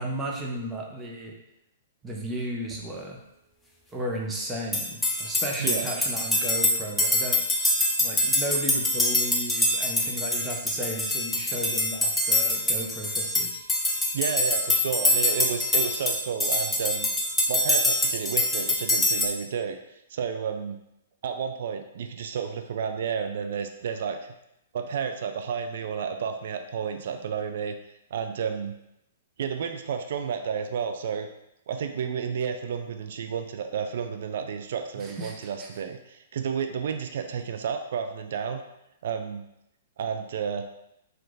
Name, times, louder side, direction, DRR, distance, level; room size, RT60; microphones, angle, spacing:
voice 1, 0.0-1.3 2.0-3.2 3.9-7.4 8.0-13.6 35.0-35.7, right 1 dB, 15° right, -1 dB, 0.9 m, -34 dB
sound 1, 4.7-19.3, left 1 dB, 10° left, 0.6 m, -25 dB
voice 2, 5.6-5.9 14.1-17.1 17.5-19.8 20.1-20.8 21.2-24.2 24.7-27.8 28.1-28.8 29.4-31.3 31.7-38.6 39.0-39.4 40.0-40.7, right 7 dB, 60° right, 6 dB, 0.4 m, -31 dB
4.5 x 2.5 x 3.8 m, 0.83 s
figure-of-eight pair, 115°, 0 cm